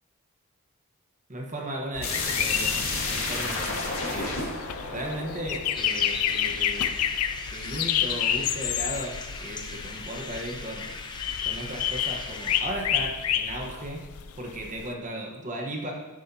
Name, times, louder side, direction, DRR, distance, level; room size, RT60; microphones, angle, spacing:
voice 1, 1.3-2.7 3.1-3.8 4.0-4.4 4.9-6.9 7.5-10.9 11.4-14.0 14.4-15.9, right 1 dB, 35° right, 0 dB, 1.3 m, -36 dB
sound 1, 1.9-14.9, left 10 dB, 85° left, 0.5 m, -30 dB
sound 2, 2.0-6.7, left 3 dB, 65° left, 1.7 m, -31 dB
sound 3, 5.7-12.6, left 3 dB, 20° left, 0.6 m, -39 dB
10.0 x 9.3 x 2.9 m, 1.2 s
head